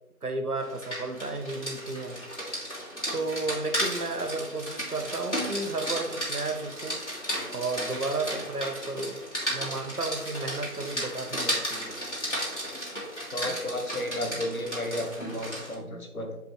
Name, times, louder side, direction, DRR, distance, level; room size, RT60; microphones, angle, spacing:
voice 1, 0.2-2.3 3.1-7.0 7.5-9.2 9.5-12.0, right 3 dB, 85° right, 7 dB, 1.0 m, -33 dB
Rain, 0.6-15.8, equal, 50° left, 2.1 m, -34 dB
voice 2, 13.3-16.4, left 1 dB, 70° left, 3 dB, 1.3 m, -33 dB
6.5 x 5.1 x 3.0 m, 0.90 s
figure-of-eight pair, 180°, 45 cm